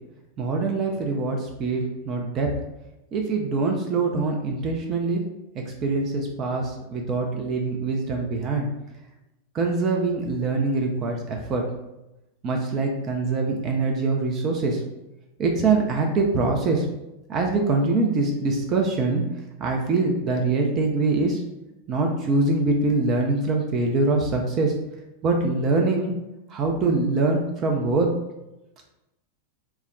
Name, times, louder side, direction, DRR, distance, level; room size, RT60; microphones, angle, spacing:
voice 1, 0.4-2.5 3.1-5.2 5.8-8.7 9.5-11.6 12.4-14.8 15.4-16.9 17.3-19.2 19.6-21.4 21.9-24.7 25.2-26.1 26.5-28.1, right 3 dB, 30° right, 1 dB, 0.4 m, -24 dB
2.2 x 2.1 x 3.3 m, 0.94 s
figure-of-eight pair, 90°, 0 cm